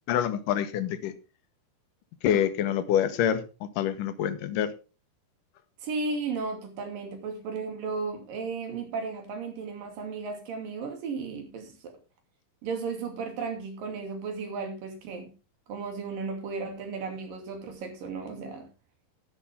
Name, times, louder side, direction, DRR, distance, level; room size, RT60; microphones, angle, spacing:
voice 1, 0.1-1.1 2.2-4.7, left 10 dB, 70° left, 2.6 m, -26 dB
voice 2, 5.8-11.9 12.6-15.3 15.7-18.7, right 4 dB, 65° right, 4.3 m, -34 dB
11.5 x 11.5 x 3.6 m
omnidirectional pair, 4.2 m